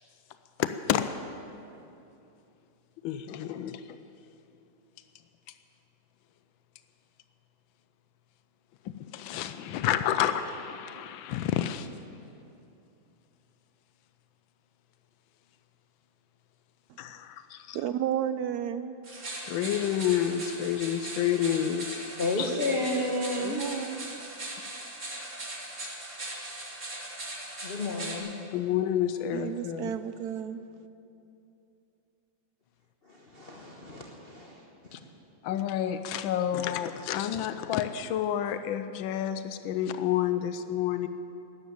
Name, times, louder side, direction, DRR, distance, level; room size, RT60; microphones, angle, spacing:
voice 1, 0.6-1.0 3.0-4.0 8.8-11.9 17.0-17.8 19.4-22.0 22.4-22.5 28.5-29.9 34.9-35.0 35.4-41.1, left 10 dB, 90° left, 10 dB, 1.4 m, -29 dB
voice 2, 17.7-19.0 23.4-24.1 29.3-30.6, right 10 dB, 70° right, 12 dB, 0.9 m, -32 dB
sound 1, 19.0-28.2, right 2 dB, 40° right, 2.7 m, -39 dB
voice 3, 22.2-23.6 27.6-28.3 33.0-34.6, left 2 dB, 35° left, -1 dB, 1.3 m, -31 dB
12.5 x 12.5 x 8.8 m, 2.7 s
omnidirectional pair, 2.1 m